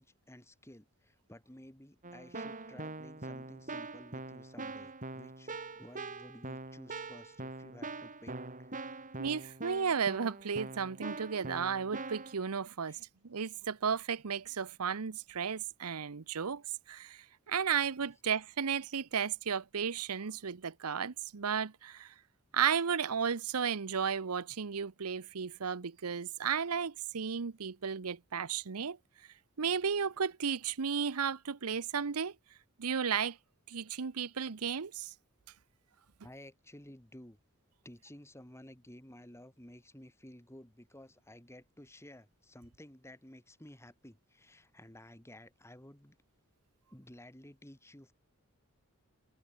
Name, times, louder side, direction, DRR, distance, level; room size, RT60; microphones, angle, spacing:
voice 1, 0.0-9.2 12.9-13.1 36.2-37.4 37.8-46.2 46.9-48.1, left 1 dB, 10° left, 3.3 m, -54 dB
Keyboard (musical), 2.0-12.4, right 3 dB, 35° right, 2.9 m, -43 dB
voice 2, 9.2-22.1 22.5-29.0 29.6-32.3 32.8-33.4 33.7-35.1, right 6 dB, 80° right, 0.8 m, -34 dB
head